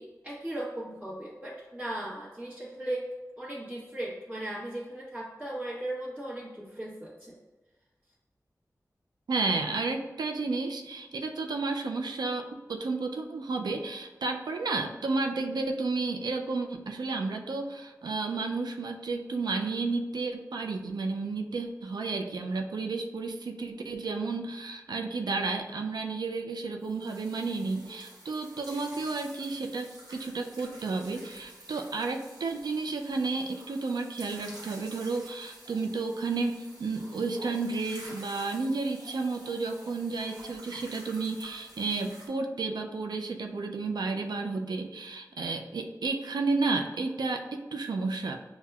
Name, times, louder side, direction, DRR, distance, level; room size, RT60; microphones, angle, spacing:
voice 1, 0.0-3.1 3.4-7.3, right 1 dB, 20° right, -9 dB, 0.9 m, -37 dB
voice 2, 9.3-48.4, right 3 dB, 90° right, 3 dB, 0.3 m, -32 dB
sound 1, 26.8-42.3, right 1 dB, 75° right, 1.0 m, -49 dB
5.7 x 2.1 x 2.3 m, 1.2 s
wide cardioid pair, 55°, 7 cm